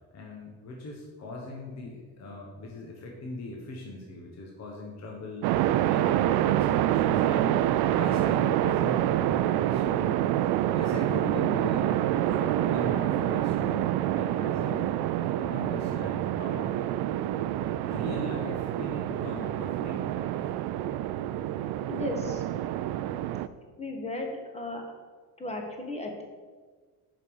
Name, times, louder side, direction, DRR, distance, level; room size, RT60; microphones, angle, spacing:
voice 1, 0.1-5.5 5.9-7.6 8.0-10.2 10.8-12.0 12.3-14.9 15.4-16.8 17.8-20.3, left 2 dB, 40° left, -1 dB, 1.3 m, -40 dB
sound 1, 5.4-23.5, right 12 dB, 70° right, 0.5 m, -27 dB
voice 2, 21.9-22.4 23.8-24.8 25.4-26.2, left 2 dB, 15° left, 2 dB, 1.3 m, -35 dB
6.6 x 5.3 x 6.3 m, 1.4 s
cardioid pair, 140°, 40 cm